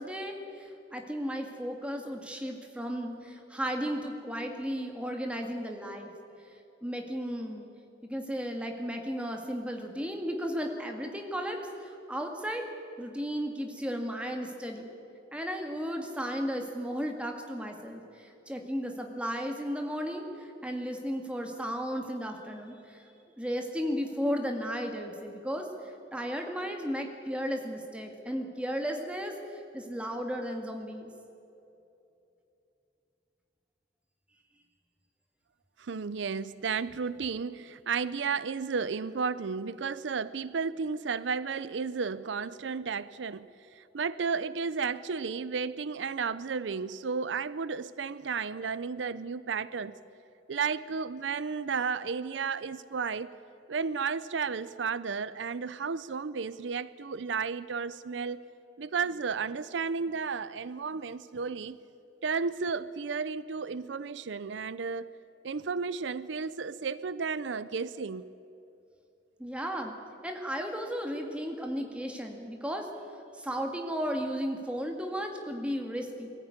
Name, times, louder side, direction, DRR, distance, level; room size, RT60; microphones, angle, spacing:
voice 1, 0.0-6.1 6.8-7.7 8.0-12.6 13.0-14.9 15.3-23.0 23.4-31.1 69.4-69.9 70.2-72.9 73.3-76.3, equal, 5° right, 2.0 m, -34 dB
voice 2, 35.8-43.5 43.8-50.0 50.5-53.3 53.7-58.5 58.8-61.8 62.2-65.2 65.4-68.3, right 5 dB, 80° right, 0.5 m, -33 dB
22.0 x 14.5 x 9.6 m
head